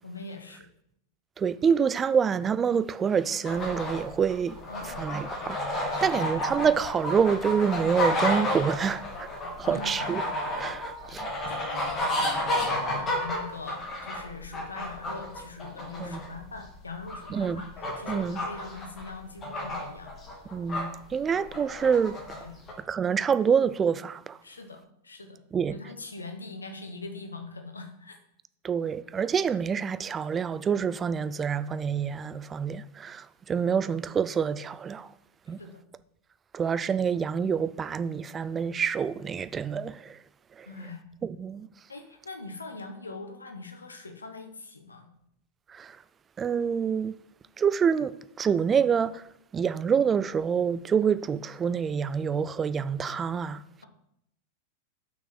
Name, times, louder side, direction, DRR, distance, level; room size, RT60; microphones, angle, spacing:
voice 1, 0.0-0.7 4.7-5.1 5.9-6.3 9.6-9.9 11.5-17.7 18.0-20.1 22.4-22.6 24.4-25.4 25.7-28.2 35.5-35.8 40.6-41.0 41.9-45.1, left 3 dB, 75° left, 1.2 m, -42 dB
voice 2, 1.4-4.6 5.0-9.3 9.6-10.2 10.5-11.2 16.0-16.2 17.3-17.6 18.1-18.4 20.5-22.2 22.9-24.4 25.5-25.8 28.6-35.1 35.5-35.6 36.5-40.2 40.6-40.7 41.2-41.7 45.7-46.0 46.4-47.1 47.6-49.3 49.5-53.6, right 7 dB, 20° right, 0.3 m, -27 dB
sound 1, 3.4-20.8 21.3-22.4 22.7-22.8, left 1 dB, 25° left, 2.3 m, -31 dB
6.1 x 6.1 x 6.1 m
figure-of-eight pair, 90°, 0 cm